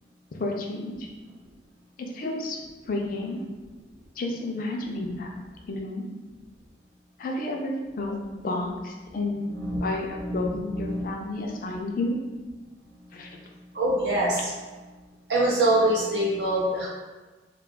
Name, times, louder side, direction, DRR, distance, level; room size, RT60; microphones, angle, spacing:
voice 1, 0.4-1.1 2.0-2.6 2.9-3.4 4.2-5.3 5.7-6.1 7.2-8.2 8.4-12.2 13.1-13.4, left 2 dB, 50° left, 1 dB, 0.4 m, -31 dB
voice 2, 9.5-9.8 10.2-10.4 10.7-11.0 13.7-14.5 15.3-16.9, right 1 dB, 70° right, -5 dB, 0.5 m, -24 dB
2.3 x 2.3 x 3.6 m, 1.3 s
head